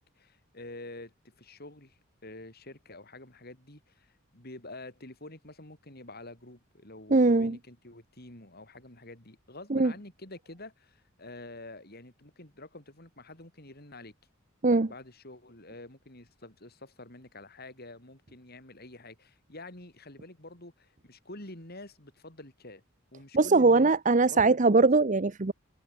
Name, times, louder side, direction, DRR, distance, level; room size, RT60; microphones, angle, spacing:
voice 1, 0.0-14.1 14.9-22.8 23.1-23.9 24.3-24.9, left 2 dB, 50° left, 5.9 m, -47 dB
voice 2, 7.1-7.6 9.7-9.9 14.6-14.9 23.3-25.5, right 3 dB, 40° right, 0.8 m, -21 dB
head